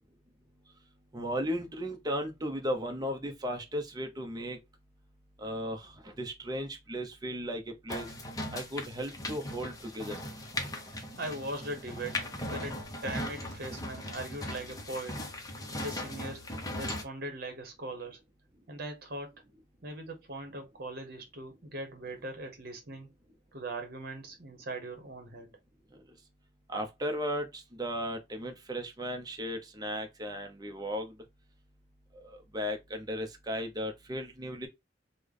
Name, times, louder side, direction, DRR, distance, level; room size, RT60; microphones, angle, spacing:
voice 1, 1.1-4.6 5.4-8.1 8.5-10.2 25.9-26.0 26.7-31.1 32.2-34.7, equal, 20° right, 0.6 m, -36 dB
sound 1, 7.9-17.0, left 1 dB, 20° left, 0.6 m, -38 dB
voice 2, 11.2-15.2 15.7-16.5 16.8-18.2 18.7-19.3 19.8-23.1 23.5-25.5, right 1 dB, 55° right, 1.0 m, -40 dB
3.3 x 2.1 x 3.7 m
head